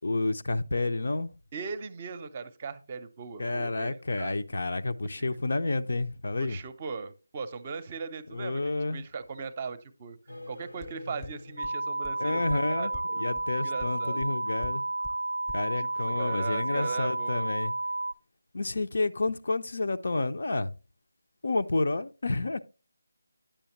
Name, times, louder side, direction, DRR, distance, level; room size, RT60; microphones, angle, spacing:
voice 1, 0.0-1.3 3.4-6.6 8.3-9.0 12.2-12.9 13.2-14.8 15.5-17.7 18.5-20.7 21.4-22.6, left 2 dB, 55° left, 0.6 m, -30 dB
voice 2, 1.5-4.4 5.2-5.3 6.4-10.2 10.5-13.3 13.6-14.4 15.8-17.5, right 5 dB, 25° right, 0.7 m, -39 dB
sound 1, 10.3-13.3, left 1 dB, 80° left, 1.1 m, -47 dB
sound 2, 10.8-10.9 11.2-11.3 11.6-11.7 12.0-12.1 12.5-12.6 12.9-13.0 13.4-13.5 13.8-13.9 14.2-14.3 14.6-14.7 15.0-15.1 15.5-15.6, left 3 dB, 10° left, 0.5 m, -42 dB
sound 3, 11.6-18.1, right 2 dB, 90° right, 0.4 m, -32 dB
10.0 x 6.9 x 3.0 m
figure-of-eight pair, 160°, 0 cm